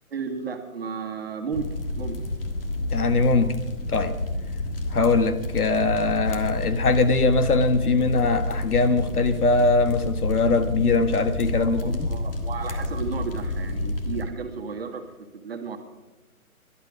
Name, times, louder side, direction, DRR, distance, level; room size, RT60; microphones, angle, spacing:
voice 1, 0.1-2.2 11.5-15.1 15.3-15.8, right 6 dB, 45° right, 6 dB, 1.8 m, -33 dB
sound 1, 1.5-14.2, left 1 dB, 40° left, 1.6 m, -29 dB
voice 2, 2.9-3.5 3.9-4.2 4.9-12.1, left 3 dB, 85° left, 10 dB, 1.6 m, -21 dB
18.0 x 12.0 x 4.9 m, 1.1 s
hypercardioid pair, 170°, 44 cm